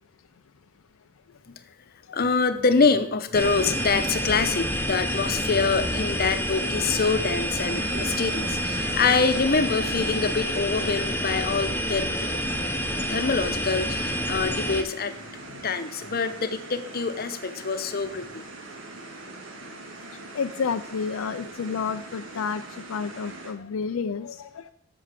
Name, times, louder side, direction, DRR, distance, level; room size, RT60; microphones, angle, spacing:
voice 1, 2.1-12.7 13.1-15.1 15.6-18.4, left 4 dB, 45° left, 10 dB, 0.8 m, -25 dB
sound 1, 3.3-14.8, equal, 10° left, 0.8 m, -28 dB
sound 2, 7.6-23.5, right 2 dB, 65° right, 1.6 m, -42 dB
voice 2, 20.3-24.7, left 5 dB, 70° left, 9 dB, 0.4 m, -30 dB
8.4 x 7.0 x 7.4 m, 0.70 s
head